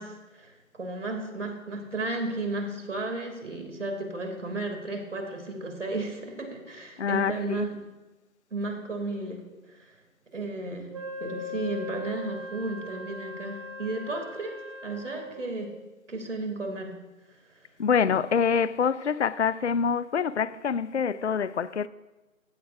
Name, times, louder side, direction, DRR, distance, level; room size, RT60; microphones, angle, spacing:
voice 1, 0.0-7.8 8.5-10.0 10.3-10.9 11.2-15.8 16.1-17.0 17.3-17.6, right 2 dB, 60° right, 2.7 m, -34 dB
voice 2, 7.0-7.7 17.8-21.9, left 6 dB, 55° left, 0.5 m, -26 dB
Wind instrument woodwind instrument, 10.9-15.5, left 2 dB, 20° right, 1.7 m, -39 dB
15.5 x 12.5 x 2.6 m
figure-of-eight pair, 165°, 41 cm